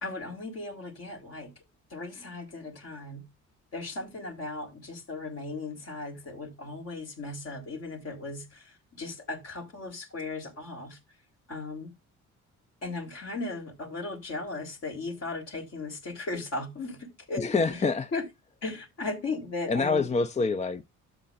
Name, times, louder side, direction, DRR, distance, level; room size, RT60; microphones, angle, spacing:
voice 1, 0.0-1.5 1.9-3.3 3.7-11.0 11.5-11.9 12.8-17.8 18.1-18.2 18.6-20.1, left 3 dB, 55° left, 3.8 m, -37 dB
voice 2, 17.4-18.1 19.7-20.9, left 4 dB, 25° left, 0.5 m, -26 dB
12.5 x 7.6 x 2.5 m
cardioid pair, 90°, 30 cm